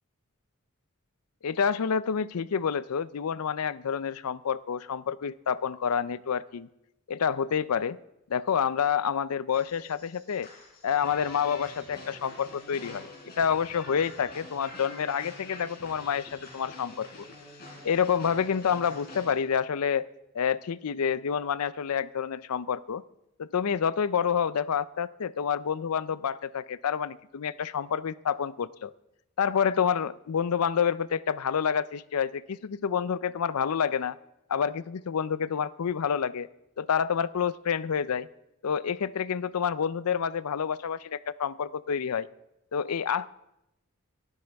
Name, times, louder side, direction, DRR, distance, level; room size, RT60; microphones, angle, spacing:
voice 1, 1.4-6.7 7.1-8.0 8.3-10.5 10.8-13.1 13.4-17.3 17.8-20.1 20.3-23.0 23.4-28.9 29.4-34.2 34.5-36.5 36.8-38.3 38.6-42.3 42.7-43.3, left 7 dB, 85° left, 17 dB, 0.5 m, -28 dB
sound 1, 9.5-19.3, left 2 dB, 45° left, 4.9 m, -46 dB
24.0 x 12.0 x 3.5 m, 0.87 s
head